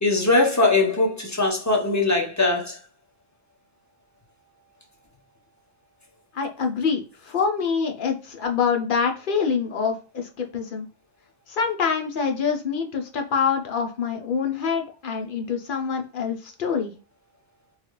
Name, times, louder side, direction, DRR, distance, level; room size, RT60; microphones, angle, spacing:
voice 1, 0.0-2.8, left 2 dB, 20° left, 0.6 m, -21 dB
voice 2, 6.3-10.9 11.5-16.9, left 6 dB, 55° left, 0.8 m, -25 dB
3.2 x 2.4 x 3.0 m
omnidirectional pair, 1.1 m